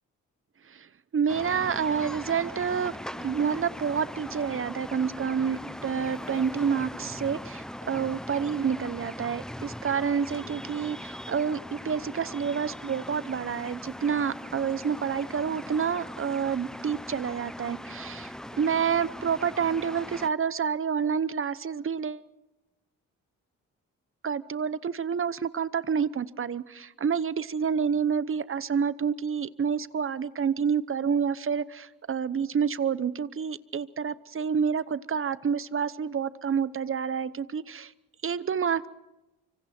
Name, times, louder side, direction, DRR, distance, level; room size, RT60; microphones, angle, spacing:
voice 1, 1.1-22.2 24.2-37.9 38.2-38.9, right 7 dB, 40° right, 0.9 m, -28 dB
sound 1, 1.3-20.3, equal, ahead, 0.9 m, -40 dB
25.0 x 25.0 x 4.5 m
supercardioid pair, 60°, 33 cm